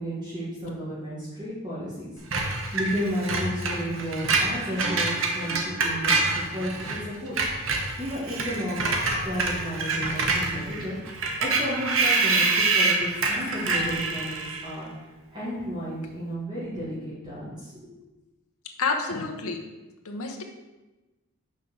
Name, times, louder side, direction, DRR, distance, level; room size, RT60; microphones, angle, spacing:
voice 1, 0.0-2.1 2.7-7.4 8.0-8.8 9.2-14.9 15.3-17.7, equal, 20° right, -9 dB, 1.9 m, -33 dB
Screech, 2.3-7.0 7.3-14.7, right 3 dB, 65° right, 1.2 m, -26 dB
voice 2, 18.6-19.6 20.0-20.4, left 4 dB, 85° left, 3 dB, 1.0 m, -29 dB
6.0 x 4.7 x 6.5 m, 1.1 s
head